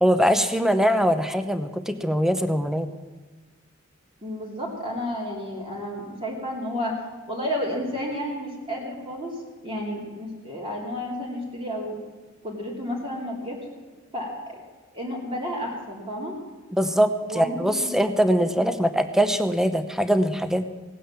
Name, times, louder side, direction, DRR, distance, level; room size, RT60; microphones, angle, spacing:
voice 1, 0.0-2.9 16.7-20.7, equal, 5° right, 10 dB, 0.8 m, -22 dB
voice 2, 4.2-7.0 7.3-9.3 9.6-12.0 12.4-13.6 14.1-14.6 14.9-16.4 17.2-17.9, equal, 30° right, -3 dB, 2.9 m, -31 dB
17.5 x 9.2 x 7.3 m, 1.4 s
head